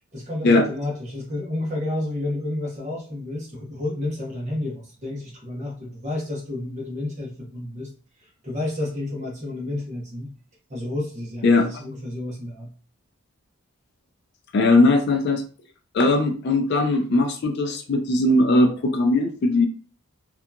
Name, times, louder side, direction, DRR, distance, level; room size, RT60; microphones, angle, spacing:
voice 1, 0.1-7.9 8.4-10.3 10.7-12.7, left 1 dB, 30° right, -2 dB, 0.8 m, -30 dB
voice 2, 14.5-15.4 15.9-19.7, left 2 dB, 50° left, 5 dB, 0.3 m, -19 dB
2.8 x 2.3 x 2.2 m, 0.40 s
head